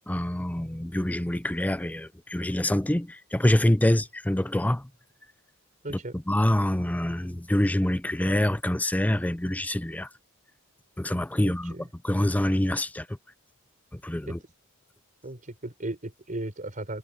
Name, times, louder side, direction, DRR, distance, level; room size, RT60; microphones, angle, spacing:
voice 1, 0.1-4.8 6.3-10.1 11.0-11.7 12.0-13.0 14.0-14.4, left 1 dB, 5° left, 0.5 m, -25 dB
voice 2, 5.8-6.1 11.4-11.9 14.3-14.4 15.2-17.0, right 2 dB, 35° right, 4.3 m, -36 dB
head